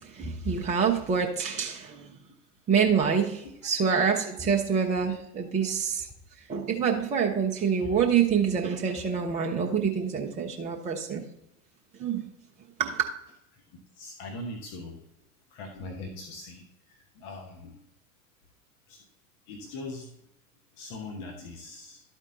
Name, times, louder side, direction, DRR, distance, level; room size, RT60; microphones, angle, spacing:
voice 1, 0.0-2.1 2.7-6.1 6.5-11.2 12.0-12.2 12.8-13.1, right 6 dB, 15° right, 1 dB, 0.7 m, -26 dB
voice 2, 14.0-15.0 15.5-17.8 18.9-19.0 19.5-20.1 20.8-22.0, left 2 dB, 40° left, 3 dB, 1.3 m, -41 dB
12.0 x 4.4 x 3.8 m, 0.81 s
figure-of-eight pair, 90°, 45 cm